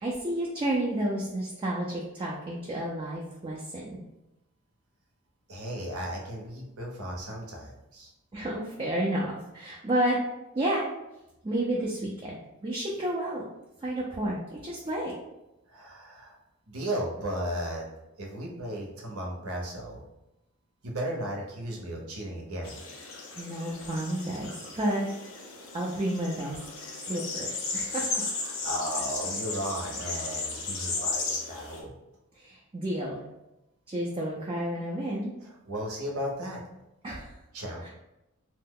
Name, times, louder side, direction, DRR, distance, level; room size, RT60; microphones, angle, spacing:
voice 1, 0.0-4.0 8.3-10.2 10.5-10.9 11.4-13.4 13.8-15.2 23.4-25.1 25.7-26.6 27.1-28.2 32.4-33.2 33.9-35.3 37.0-37.3 37.8-37.9, right 1 dB, 25° right, -4 dB, 0.4 m, -31 dB
voice 2, 5.5-8.1 15.7-16.4 16.7-17.9 18.2-20.0 20.8-22.8 28.4-31.9 35.4-36.6 37.5-37.9, equal, 80° right, -1 dB, 0.8 m, -35 dB
sound 1, 22.6-31.8, left 3 dB, 65° left, 0.6 m, -35 dB
2.8 x 2.1 x 3.6 m, 0.93 s
head